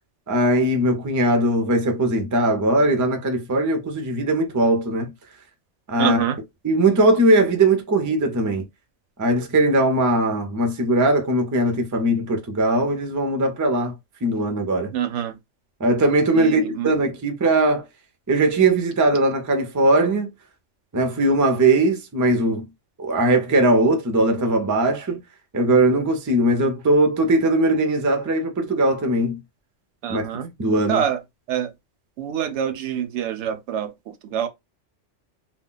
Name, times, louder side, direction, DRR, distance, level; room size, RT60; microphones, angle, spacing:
voice 1, 0.3-5.1 5.9-6.2 6.6-8.6 9.2-14.9 15.8-17.8 18.3-20.3 20.9-22.7 23.0-25.2 25.5-29.4 30.1-30.2 30.6-31.0, right 2 dB, 25° right, 0.4 m, -20 dB
voice 2, 6.0-6.4 14.9-15.4 16.3-16.9 30.0-30.5 30.9-31.2 31.5-31.7 32.2-34.5, right 9 dB, 75° right, 0.9 m, -26 dB
2.3 x 2.1 x 3.8 m
omnidirectional pair, 1.2 m